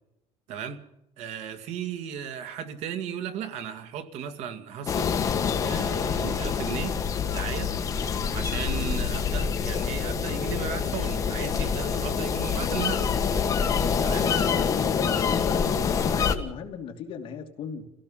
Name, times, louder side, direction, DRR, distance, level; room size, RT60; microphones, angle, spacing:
voice 1, 0.5-0.9 1.2-5.2 5.6-7.0 7.3-7.7 8.3-13.1 14.0-14.3, right 8 dB, 75° right, 2.2 m, -35 dB
sound 1, 4.9-16.3, left 6 dB, 30° left, 1.7 m, -26 dB
voice 2, 14.2-17.8, left 7 dB, 50° left, 2.6 m, -37 dB
29.5 x 16.5 x 5.7 m
cardioid pair, 180°, 11 cm